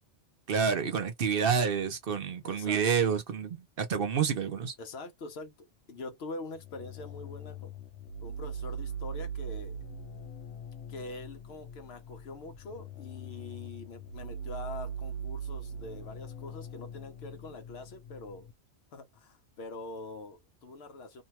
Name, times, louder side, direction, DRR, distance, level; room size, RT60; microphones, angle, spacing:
voice 1, 0.5-4.7, right 6 dB, 60° right, 0.7 m, -28 dB
voice 2, 2.4-3.1 4.8-7.7 8.2-9.8 10.9-18.5 18.9-21.2, left 2 dB, 65° left, 0.9 m, -44 dB
sound 1, 6.5-18.5, right 3 dB, 90° left, 1.0 m, -41 dB
2.6 x 2.2 x 2.8 m
omnidirectional pair, 1.2 m